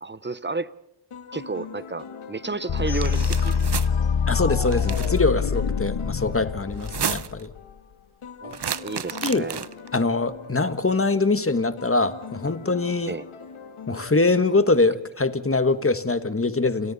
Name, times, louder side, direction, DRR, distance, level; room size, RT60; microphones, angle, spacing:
voice 1, 0.0-0.7 1.3-3.7 8.4-9.6 13.1-13.3, right 3 dB, 20° right, 0.9 m, -32 dB
sound 1, 1.1-15.3, left 6 dB, 90° left, 1.9 m, -43 dB
sound 2, 2.7-7.6, left 6 dB, 65° left, 1.1 m, -25 dB
sound 3, 2.9-3.9 4.7-5.2 6.7-7.4 8.5-9.9, right 8 dB, 55° right, 0.8 m, -32 dB
voice 2, 4.3-7.5 9.2-9.5 9.9-13.1 13.9-16.9, left 3 dB, 25° left, 1.5 m, -23 dB
29.5 x 28.5 x 4.2 m
wide cardioid pair, 60°, 48 cm